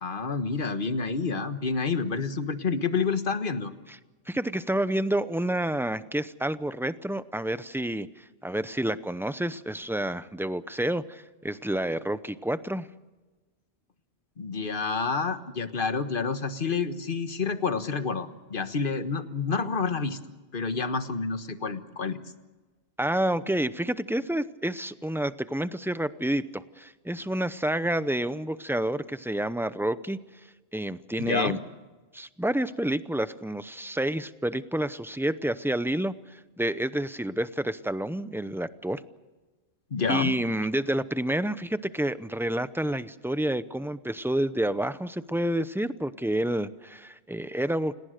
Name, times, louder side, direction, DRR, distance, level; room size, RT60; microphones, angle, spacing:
voice 1, 0.0-3.7 14.4-20.2 20.5-22.2 31.2-31.6 39.9-40.3, left 4 dB, 50° left, 10 dB, 1.5 m, -28 dB
voice 2, 4.3-12.9 23.0-30.2 30.7-31.6 32.1-39.0 40.1-47.9, right 1 dB, 5° right, 13 dB, 0.5 m, -29 dB
28.5 x 19.0 x 6.6 m, 1.2 s
omnidirectional pair, 1.1 m